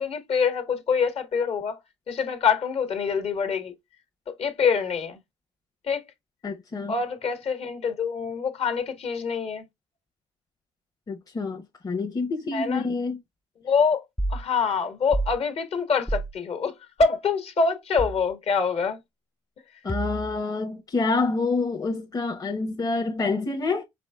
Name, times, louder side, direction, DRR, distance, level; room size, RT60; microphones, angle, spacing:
voice 1, 0.0-1.8 2.1-3.7 4.3-5.2 5.8-6.0 6.9-9.6 12.5-12.9 13.6-14.0 14.3-19.0, left 5 dB, 50° left, 1.5 m, -25 dB
voice 2, 6.4-6.9 11.1-13.2 19.8-23.8, left 3 dB, 30° left, 1.0 m, -27 dB
sound 1, 14.2-14.4 15.1-15.4 16.1-16.3 18.0-18.3 19.9-20.4, right 2 dB, 5° left, 0.4 m, -28 dB
4.8 x 3.6 x 2.3 m
supercardioid pair, 80°, 13 cm